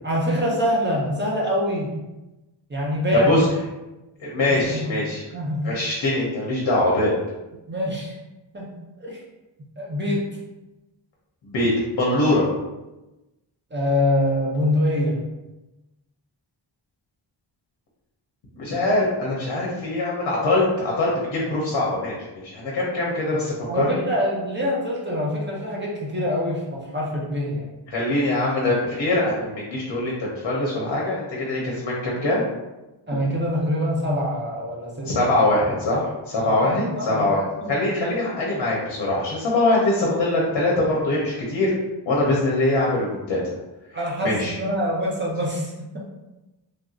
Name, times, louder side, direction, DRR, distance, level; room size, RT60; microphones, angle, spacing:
voice 1, 0.0-2.0 2.7-3.4 4.5-4.9 5.3-5.7 7.7-8.1 8.5-9.2 9.8-10.2 13.7-15.2 23.7-27.7 33.1-35.3 36.4-37.3 37.6-37.8 43.9-46.0, left 1 dB, 25° right, -4 dB, 0.8 m, -25 dB
voice 2, 4.2-5.2 5.6-7.1 11.4-12.5 18.6-24.0 27.9-32.4 35.0-37.4 37.7-41.7 42.1-43.4 44.2-44.5, left 2 dB, 65° left, -4 dB, 0.8 m, -23 dB
3.3 x 2.6 x 2.4 m, 1.0 s
wide cardioid pair, 125°, 46 cm